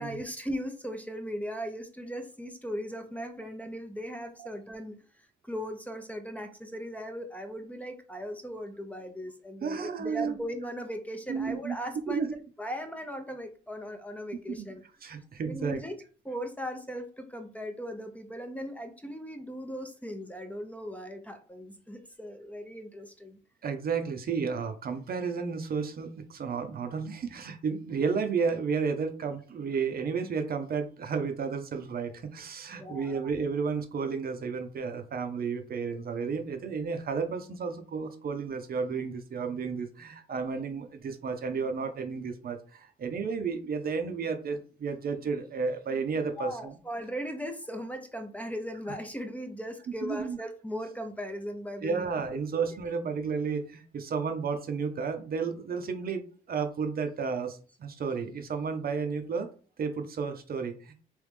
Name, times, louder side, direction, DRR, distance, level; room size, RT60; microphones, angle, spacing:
voice 1, 0.0-5.0 5.4-12.2 12.6-14.8 15.4-16.0 16.2-23.4 32.8-33.2 46.4-52.1, equal, 5° left, 6 dB, 0.6 m, -38 dB
voice 2, 9.6-10.5 11.3-12.3 14.6-14.7 15.0-15.8 23.6-46.8 50.0-50.4 51.8-56.2 56.5-59.5 59.8-60.9, right 5 dB, 50° right, 7 dB, 0.7 m, -32 dB
3.3 x 3.0 x 3.4 m, 0.39 s
cardioid pair, 90°, 20 cm